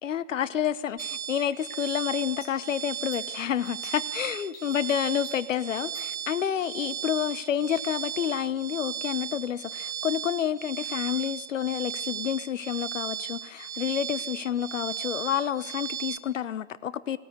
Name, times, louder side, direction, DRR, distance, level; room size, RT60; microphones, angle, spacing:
voice 1, 0.0-17.2, left 9 dB, 75° left, 18 dB, 0.9 m, -29 dB
sound 1, 0.6-6.3, left 6 dB, 50° left, 3.5 m, -51 dB
sound 2, 1.0-16.2, right 9 dB, 10° right, 0.7 m, -36 dB
19.0 x 17.5 x 7.9 m, 1.3 s
hypercardioid pair, 130°, 38 cm